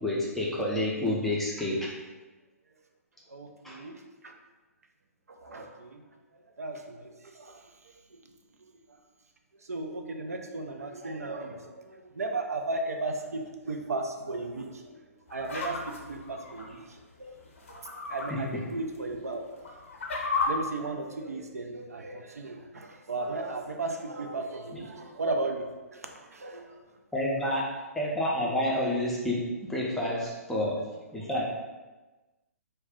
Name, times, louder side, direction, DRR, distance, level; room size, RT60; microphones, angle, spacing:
voice 1, 0.0-1.9 3.6-3.8 18.3-18.4 27.1-27.7 27.9-30.8 31.1-31.4, left 1 dB, 5° left, -6 dB, 0.5 m, -29 dB
voice 2, 3.3-4.0 4.2-4.3 5.3-6.0 6.6-8.2 9.6-15.0 15.3-17.4 17.7-19.8 20.5-26.8 27.3-27.5 28.4-28.5 30.6-30.7, right 2 dB, 75° right, 4 dB, 0.4 m, -36 dB
sound 1, 15.3-16.7 17.6-18.3 18.7-18.8 19.5-20.5, left 4 dB, 55° left, 0.5 m, -33 dB
2.4 x 2.2 x 3.5 m, 1.2 s
figure-of-eight pair, 125°, 8 cm